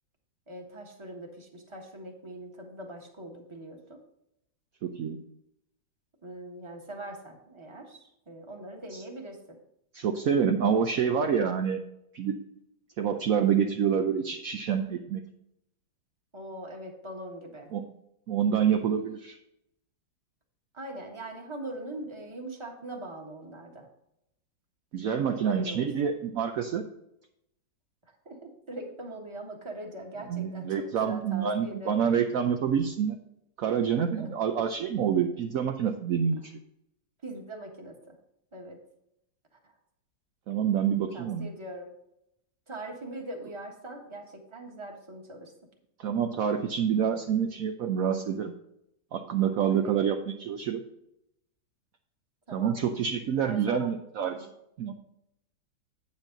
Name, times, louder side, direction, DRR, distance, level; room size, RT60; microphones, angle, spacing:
voice 1, 0.5-4.0 6.2-9.6 16.3-17.7 20.7-23.9 25.2-25.9 28.2-32.0 34.2-34.3 37.2-38.1 38.5-38.8 40.9-41.9 42.7-45.5 49.7-50.2 52.5-52.8 53.3-53.9 54.2-54.5, right 1 dB, 15° right, 1 dB, 1.3 m, -42 dB
voice 2, 4.8-5.2 8.9-9.0 9.9-11.8 12.1-12.4 13.0-15.2 17.7-17.9 18.3-19.4 24.9-26.8 30.3-33.2 33.6-36.5 40.5-41.5 46.0-48.5 49.1-50.8 52.5-54.4 54.8-54.9, right 7 dB, 70° right, 4 dB, 0.8 m, -27 dB
9.0 x 7.3 x 3.9 m, 0.81 s
omnidirectional pair, 2.1 m